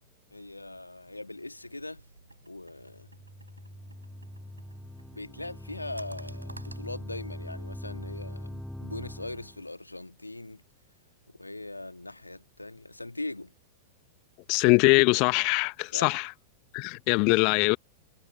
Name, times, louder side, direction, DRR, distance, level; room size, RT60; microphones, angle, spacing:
voice 1, 0.3-2.0 2.5-3.1 5.1-10.6 11.4-13.5 15.9-16.1, left 2 dB, 85° left, 2.0 m, -40 dB
sound 1, 1.6-6.9, right 2 dB, 85° right, 5.9 m, -53 dB
sound 2, 2.8-9.7, left 1 dB, ahead, 6.3 m, -42 dB
voice 2, 14.5-16.3 16.7-17.8, left 31 dB, 40° left, 0.9 m, -22 dB
figure-of-eight pair, 95°, 0 cm